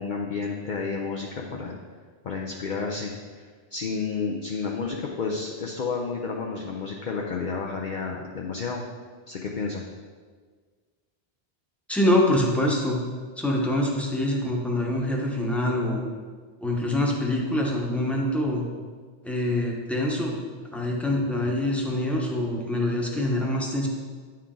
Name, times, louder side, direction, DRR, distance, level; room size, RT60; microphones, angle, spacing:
voice 1, 0.0-1.8 2.2-3.4 3.7-8.8 9.3-9.8, left 5 dB, 50° left, -1 dB, 0.7 m, -31 dB
voice 2, 11.9-13.0 13.4-16.0 16.6-18.6 19.2-20.4 20.7-23.9, left 1 dB, ahead, -2 dB, 0.9 m, -25 dB
9.7 x 4.4 x 3.8 m, 1.5 s
omnidirectional pair, 1.1 m